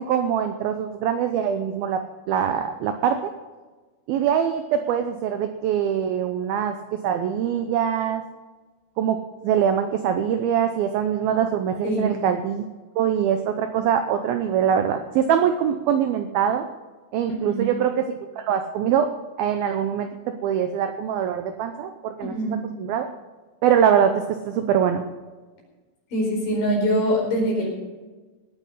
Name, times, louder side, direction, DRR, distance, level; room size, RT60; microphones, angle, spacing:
voice 1, 0.0-2.0 2.3-3.3 4.1-6.8 7.0-8.2 9.0-9.2 9.4-12.7 13.0-16.7 17.1-19.1 19.4-20.1 20.4-22.4 22.8-23.1 23.6-25.0, right 8 dB, 85° right, 7 dB, 2.1 m, -23 dB
voice 2, 17.3-17.7 22.2-22.6 26.1-27.7, equal, 50° left, -1 dB, 6.0 m, -24 dB
19.0 x 9.3 x 5.5 m, 1.3 s
omnidirectional pair, 5.4 m